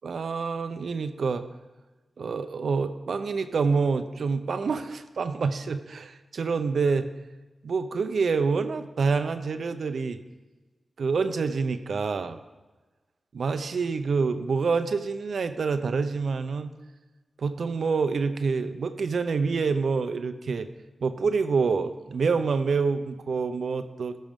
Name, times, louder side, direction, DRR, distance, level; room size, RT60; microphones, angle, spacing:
voice 1, 0.0-1.5 2.2-7.1 7.6-10.2 11.0-12.4 13.3-16.7 17.4-20.7 21.0-24.2, right 4 dB, 75° right, 9 dB, 0.5 m, -27 dB
13.0 x 6.2 x 3.6 m, 1.2 s
cardioid pair, 60°, 0 cm